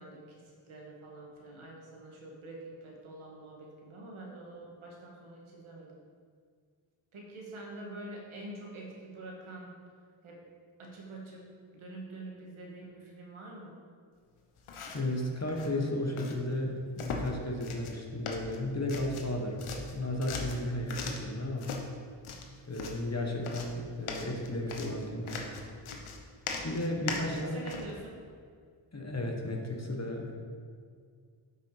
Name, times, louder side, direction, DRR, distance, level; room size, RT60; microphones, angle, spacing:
voice 1, 0.0-6.0 7.1-9.7 10.2-10.4 10.8-13.8 27.1-28.2, right 2 dB, 80° right, -2 dB, 1.9 m, -46 dB
sound 1, 14.6-15.1 15.5-15.7 16.2-16.4 17.0-17.3 17.6-18.0 18.3-19.3 19.6-21.3 21.6-21.8 22.2-23.0 23.4-27.9, left 4 dB, 90° left, 1.0 m, -39 dB
voice 2, 14.9-21.8 22.7-25.4 26.6-27.6 28.9-30.3, left 1 dB, 35° left, 1 dB, 1.5 m, -34 dB
7.8 x 6.0 x 4.9 m, 2.1 s
cardioid pair, 45°, 48 cm